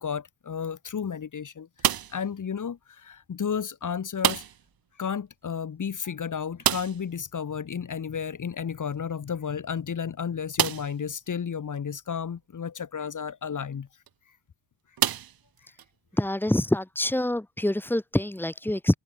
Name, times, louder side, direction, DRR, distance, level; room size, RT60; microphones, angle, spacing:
voice 1, 0.0-4.4 5.0-13.9, left 7 dB, 40° left, 3.9 m, -32 dB
sound 1, 1.8-2.3 4.2-4.7 5.0-5.1 5.4-5.5 6.6-7.2 8.9-9.0 9.6-9.7 10.5-11.0 11.8-11.9 13.9-14.1 15.0-15.9, right 10 dB, 50° right, 1.2 m, -27 dB
voice 2, 16.1-19.0, left 1 dB, 5° left, 3.8 m, -26 dB
open air
wide cardioid pair, 170°, 45 cm